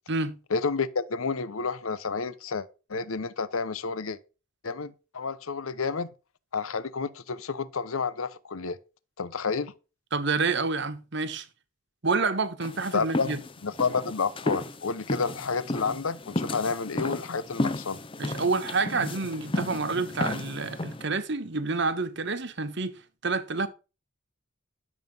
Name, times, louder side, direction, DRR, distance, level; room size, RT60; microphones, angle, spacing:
voice 1, 0.5-4.2 4.6-6.1 6.5-8.8 9.2-9.7 12.9-18.0, left 4 dB, 85° left, 0.8 m, -30 dB
voice 2, 10.1-11.5 12.0-13.4 18.2-23.7, right 4 dB, 55° right, 1.3 m, -28 dB
sound 1, 12.6-21.1, left 2 dB, 25° left, 0.6 m, -33 dB
11.0 x 7.3 x 5.4 m
head